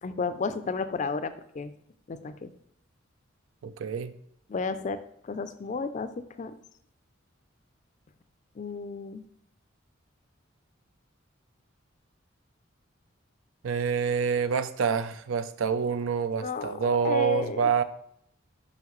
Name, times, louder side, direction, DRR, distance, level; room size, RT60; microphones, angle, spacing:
voice 1, 0.0-1.7 2.1-2.5 4.5-5.0 5.2-6.1 6.4-6.5 8.6-9.2 16.4-16.7 17.0-17.6, left 4 dB, 40° left, 12 dB, 0.4 m, -32 dB
voice 2, 3.6-4.1 13.6-17.8, right 6 dB, 80° right, 13 dB, 0.4 m, -27 dB
5.7 x 5.6 x 3.1 m, 0.70 s
head